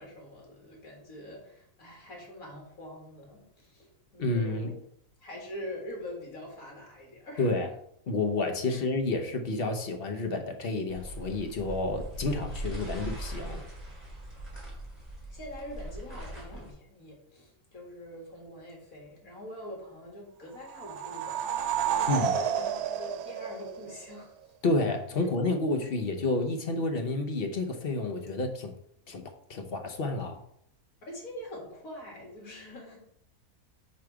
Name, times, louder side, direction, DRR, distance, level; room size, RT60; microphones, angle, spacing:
voice 1, 0.0-4.8 5.2-7.6 8.7-8.9 15.3-21.4 21.8-24.5 25.2-25.3 31.1-33.0, left 1 dB, 70° left, 2.3 m, -44 dB
voice 2, 4.2-4.7 7.4-7.7 8.1-13.6 22.1-22.4 24.6-28.7 29.1-29.2 29.5-30.4, left 2 dB, 50° left, 0.9 m, -30 dB
sound 1, 10.9-16.7, right 1 dB, 25° right, 2.6 m, -40 dB
sound 2, 20.6-24.2, right 9 dB, 90° right, 1.1 m, -31 dB
5.0 x 4.9 x 4.7 m
omnidirectional pair, 1.5 m